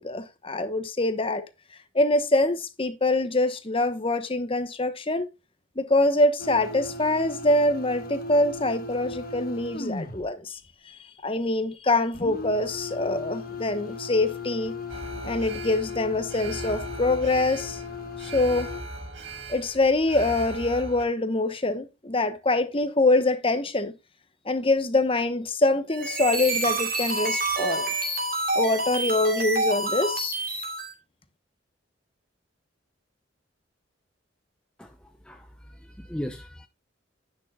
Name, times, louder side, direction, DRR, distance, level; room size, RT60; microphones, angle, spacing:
voice 1, 0.0-1.4 1.9-5.3 5.8-10.6 11.2-14.7 15.2-17.8 18.2-18.7 19.5-23.9 24.5-27.9 28.5-30.3, left 2 dB, 25° left, 1.0 m, -24 dB
sound 1, 6.4-10.3 12.1-18.8, left 3 dB, 45° left, 1.3 m, -37 dB
Alarm, 14.9-21.0, right 2 dB, 65° right, 1.9 m, -39 dB
sound 2, 25.9-30.9, right 2 dB, 45° right, 2.6 m, -28 dB
voice 2, 34.8-36.7, equal, 5° left, 0.6 m, -38 dB
11.0 x 9.2 x 2.3 m
head